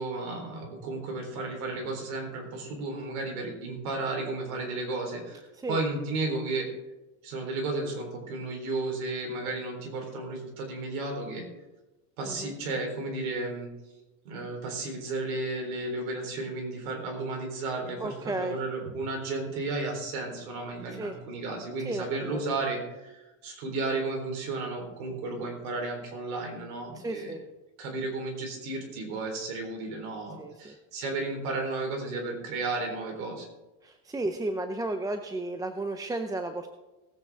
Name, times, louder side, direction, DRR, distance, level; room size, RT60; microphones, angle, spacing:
voice 1, 0.0-5.4 5.7-6.7 7.2-11.5 12.2-13.7 14.2-27.3 27.8-33.5, right 3 dB, 90° right, 1 dB, 4.1 m, -33 dB
voice 2, 18.0-18.6 21.0-21.1 21.8-22.4 26.9-27.4 30.4-30.8 33.8-36.7, right 2 dB, 10° right, 7 dB, 0.5 m, -33 dB
18.0 x 8.9 x 3.6 m, 1.1 s
supercardioid pair, 125°, 42 cm